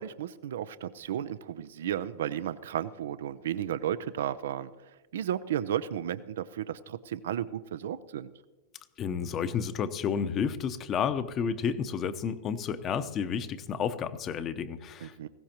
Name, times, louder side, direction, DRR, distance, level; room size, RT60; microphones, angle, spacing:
voice 1, 0.0-4.7 5.1-8.3 15.0-15.3, right 10 dB, 75° right, 14 dB, 0.5 m, -33 dB
voice 2, 9.0-15.3, left 7 dB, 35° left, 11 dB, 0.8 m, -31 dB
19.0 x 16.0 x 3.0 m, 1.2 s
hypercardioid pair, 110°, 0 cm